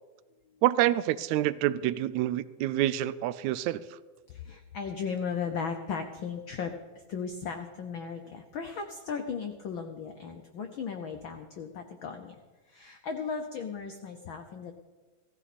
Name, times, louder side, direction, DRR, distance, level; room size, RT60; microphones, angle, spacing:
voice 1, 0.6-3.8, right 14 dB, 80° right, 16 dB, 1.8 m, -27 dB
voice 2, 4.3-6.7 7.1-12.4 12.7-14.7, left 6 dB, 90° left, 6 dB, 1.1 m, -36 dB
17.5 x 14.5 x 4.2 m, 1.3 s
omnidirectional pair, 3.4 m